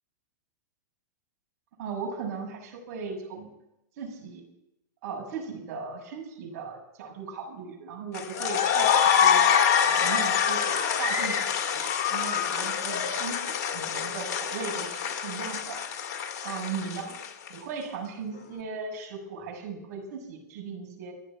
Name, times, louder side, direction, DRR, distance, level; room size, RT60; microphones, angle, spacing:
voice 1, 1.8-3.5 4.0-4.4 5.0-9.4 9.8-11.8 12.1-13.4 13.6-15.8 16.4-17.1 17.5-21.1, right 5 dB, 55° right, 1 dB, 6.9 m, -37 dB
sound 1, 8.1-17.5, left 8 dB, 45° left, 2.1 m, -25 dB
14.0 x 10.0 x 9.0 m, 0.87 s
hypercardioid pair, 120°, 9 cm